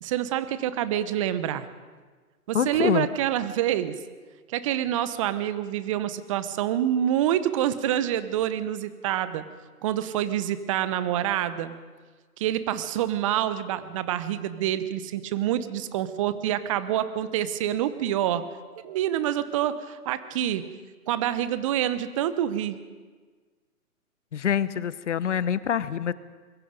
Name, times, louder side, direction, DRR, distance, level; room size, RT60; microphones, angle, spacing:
voice 1, 0.0-1.7 2.5-4.0 4.5-9.4 9.8-11.7 12.4-18.4 18.8-20.6 21.1-22.8, right 11 dB, 20° right, 13 dB, 0.9 m, -27 dB
voice 2, 2.5-3.1 24.3-26.1, left 8 dB, 50° left, 17 dB, 1.0 m, -25 dB
25.5 x 21.5 x 5.2 m, 1.4 s
figure-of-eight pair, 135°, 45 cm